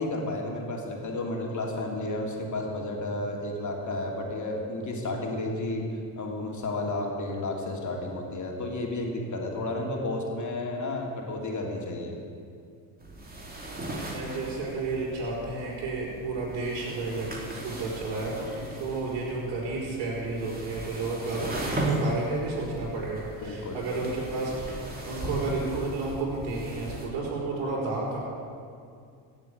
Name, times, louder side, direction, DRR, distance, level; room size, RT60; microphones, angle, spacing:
voice 1, 0.0-5.8 6.2-12.1 23.4-23.9, left 2 dB, 40° left, 0 dB, 3.3 m, -32 dB
sound 1, 13.0-27.1, right 1 dB, 20° right, 3.4 m, -37 dB
voice 2, 14.1-28.2, right 3 dB, 75° right, -5 dB, 4.9 m, -32 dB
16.5 x 8.3 x 8.3 m, 2.3 s
supercardioid pair, 80°, 44 cm